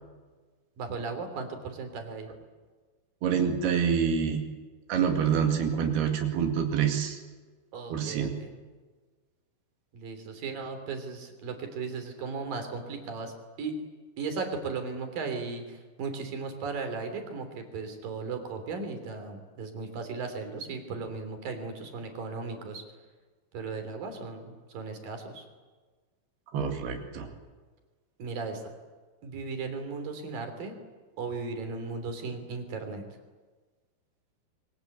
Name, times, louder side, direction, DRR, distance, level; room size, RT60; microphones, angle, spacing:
voice 1, 0.8-2.3 7.7-8.5 9.9-13.7 14.2-22.8 23.5-25.5 28.2-28.6 29.2-30.7 31.2-33.0, right 4 dB, 65° right, 6 dB, 5.1 m, -36 dB
voice 2, 3.2-4.5 4.9-7.2 7.9-8.3 26.5-27.3, right 7 dB, 90° right, 3 dB, 4.3 m, -26 dB
27.5 x 24.0 x 8.1 m, 1.3 s
omnidirectional pair, 4.4 m